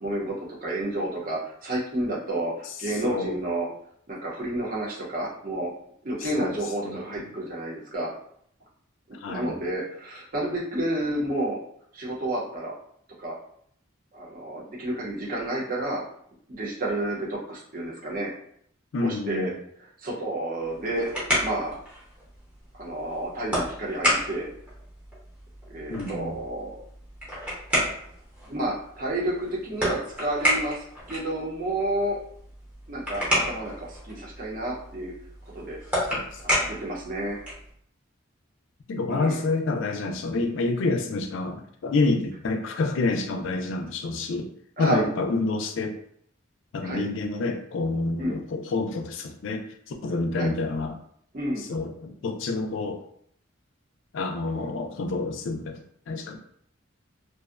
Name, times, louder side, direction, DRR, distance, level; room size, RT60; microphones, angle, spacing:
voice 1, 0.0-3.7 4.1-5.7 6.0-8.1 9.3-11.6 11.9-12.7 13.2-13.3 14.1-16.0 16.5-18.3 19.0-19.5 20.0-21.1 21.4-21.7 22.7-24.5 25.7-26.8 28.5-32.2 32.9-35.1 35.5-35.8 36.4-37.4 39.1-39.4 44.8-45.1 46.8-47.0 48.2-48.4 50.3-50.5 51.3-51.6, right 1 dB, 40° right, -3 dB, 0.7 m, -30 dB
voice 2, 2.9-3.4 6.2-6.6 6.8-7.0 9.2-9.6 18.9-19.6 25.9-26.4 36.1-36.4 38.9-44.5 44.8-45.9 46.7-49.6 50.0-51.0 51.6-53.0 54.1-56.4, left 3 dB, 65° left, 4 dB, 0.4 m, -28 dB
sound 1, 20.6-37.7, equal, 10° right, 0.7 m, -31 dB
2.5 x 2.0 x 2.4 m, 0.65 s
head